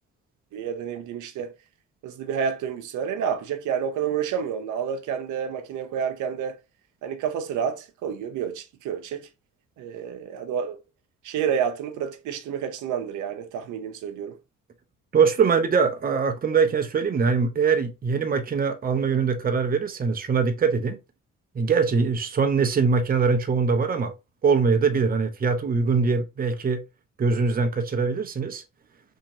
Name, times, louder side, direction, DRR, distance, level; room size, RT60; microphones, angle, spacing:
voice 1, 0.5-1.5 2.0-6.6 7.0-9.3 9.8-10.8 11.2-14.4, right 7 dB, 80° right, 0.6 m, -29 dB
voice 2, 15.1-21.0 21.5-24.1 24.4-26.8 27.2-28.6, right 5 dB, 30° right, 0.6 m, -22 dB
2.9 x 2.8 x 2.6 m
cardioid pair, 90°, 30 cm